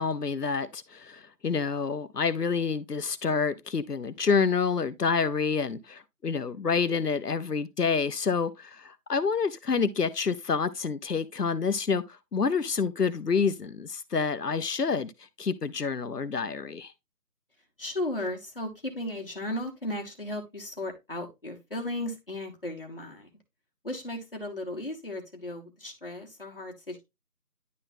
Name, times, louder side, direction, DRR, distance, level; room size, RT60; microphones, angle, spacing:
voice 1, 0.0-12.0 12.3-15.1 15.4-16.9, left 5 dB, 80° left, 0.9 m, -28 dB
voice 2, 17.8-23.3 23.8-27.0, left 1 dB, 35° left, 1.4 m, -35 dB
10.5 x 3.9 x 2.7 m
figure-of-eight pair, 175°, 47 cm